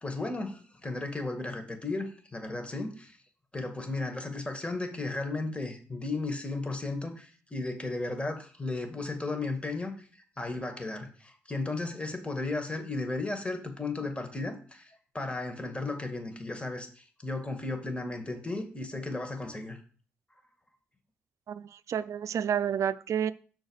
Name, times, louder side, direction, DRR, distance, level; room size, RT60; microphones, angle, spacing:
voice 1, 0.0-3.1 3.5-9.9 10.4-19.8, left 2 dB, 20° left, 2.0 m, -35 dB
voice 2, 21.5-23.3, right 8 dB, 60° right, 0.5 m, -30 dB
6.3 x 4.7 x 6.5 m
hypercardioid pair, 45°, 6 cm